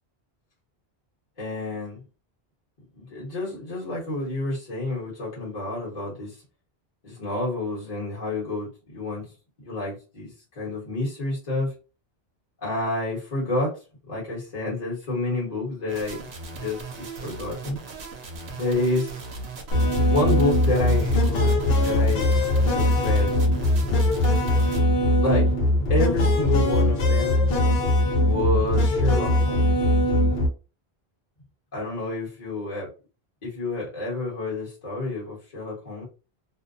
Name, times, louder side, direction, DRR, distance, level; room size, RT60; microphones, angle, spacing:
voice 1, 1.4-2.0 3.0-6.4 7.0-9.3 9.6-10.3 10.6-11.7 12.6-13.7 14.1-16.2 16.5-17.8 18.5-19.1 20.1-21.5 21.8-22.3 22.7-23.3 25.2-25.5 25.9-27.4 28.2-29.6 31.7-32.9 33.4-36.0, left 2 dB, 40° left, -6 dB, 1.1 m, -28 dB
sound 1, 15.9-24.8, right 4 dB, 85° right, 0.9 m, -38 dB
sound 2, 19.7-30.5, left 1 dB, 70° left, 0.9 m, -21 dB
2.6 x 2.0 x 2.5 m, 0.32 s
omnidirectional pair, 1.1 m